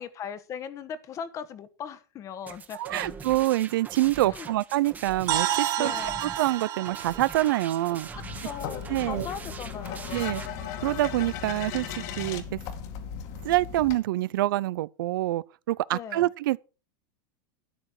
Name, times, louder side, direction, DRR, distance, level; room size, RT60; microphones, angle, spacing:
voice 1, 0.0-3.2 4.3-4.5 5.8-6.2 8.4-10.2 15.9-16.3, left 7 dB, 30° left, 1.3 m, -38 dB
sound 1, 2.5-10.5, right 5 dB, 15° right, 1.3 m, -43 dB
voice 2, 2.7-5.9 6.2-8.1 8.9-9.3 10.1-10.4 10.8-12.4 13.4-16.6, right 16 dB, 85° right, 0.5 m, -26 dB
sound 2, 5.3-9.2, right 11 dB, 35° right, 2.2 m, -31 dB
sound 3, 8.1-14.0, left 8 dB, 55° left, 2.4 m, -37 dB
13.0 x 9.9 x 4.8 m
supercardioid pair, 155°, 11 cm